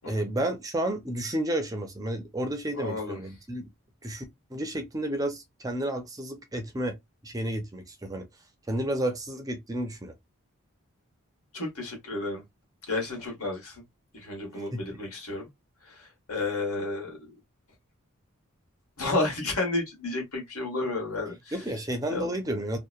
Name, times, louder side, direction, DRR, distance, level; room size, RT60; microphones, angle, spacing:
voice 1, 0.1-3.7 4.0-4.2 4.5-7.0 7.2-8.3 8.7-10.1 14.7-14.8 21.5-22.8, right 1 dB, 15° right, 0.4 m, -31 dB
voice 2, 2.7-3.2 11.5-12.4 12.9-13.8 14.1-15.5 15.9-17.2 19.0-21.5 22.1-22.3, left 2 dB, 80° left, 1.3 m, -31 dB
2.8 x 2.1 x 2.3 m
head